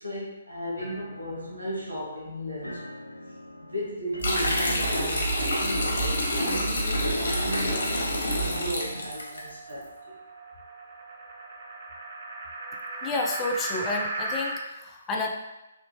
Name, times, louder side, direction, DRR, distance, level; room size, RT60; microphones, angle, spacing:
voice 1, 0.0-2.8 3.6-5.7 6.0-10.0, equal, 75° right, -4 dB, 1.2 m, -35 dB
sound 1, 0.8-9.1, equal, 90° left, 0.5 m, -41 dB
sound 2, 4.2-9.4, equal, 60° left, 0.8 m, -27 dB
sound 3, 7.9-14.6, right 2 dB, 55° right, 0.7 m, -37 dB
voice 2, 13.0-15.3, left 2 dB, 15° left, 1 dB, 0.4 m, -30 dB
3.4 x 2.4 x 2.9 m, 0.99 s
figure-of-eight pair, 135°, 0 cm